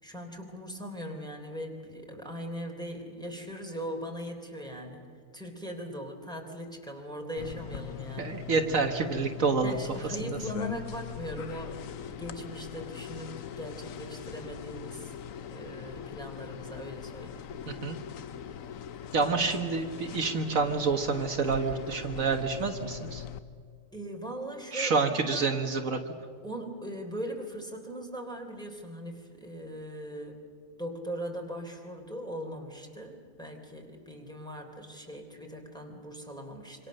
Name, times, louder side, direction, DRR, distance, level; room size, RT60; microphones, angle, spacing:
voice 1, 0.0-5.1 5.3-8.4 9.6-15.1 15.5-17.5 23.9-25.5 26.4-30.4 30.8-36.9, equal, 5° left, 1 dB, 3.6 m, -40 dB
sound 1, 7.4-23.4, left 9 dB, 70° left, 1.2 m, -41 dB
voice 2, 8.2-9.8 17.7-18.0 19.1-23.2 24.7-26.0, right 4 dB, 65° right, 5 dB, 1.7 m, -28 dB
26.5 x 25.5 x 6.6 m, 2.1 s
omnidirectional pair, 1.5 m